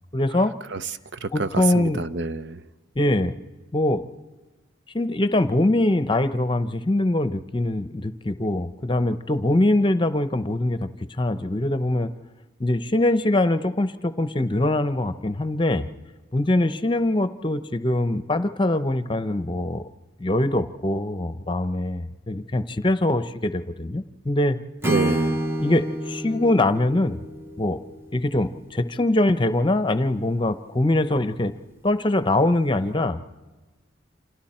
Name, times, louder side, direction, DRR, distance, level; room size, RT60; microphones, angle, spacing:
voice 1, 0.1-0.5 1.3-2.0 3.0-3.3 3.7-4.0 4.9-10.9 11.2-12.1 12.6-15.9 16.3-19.8 20.2-24.6 25.6-27.2 27.6-27.8 28.1-31.5 31.8-33.2, left 1 dB, 25° left, 12 dB, 0.8 m, -23 dB
voice 2, 1.2-2.6 24.8-25.4, right 3 dB, 60° right, 13 dB, 0.7 m, -27 dB
Acoustic guitar / Strum, 24.8-28.8, right 1 dB, 10° right, 0.8 m, -29 dB
29.0 x 27.0 x 4.4 m, 1.2 s
head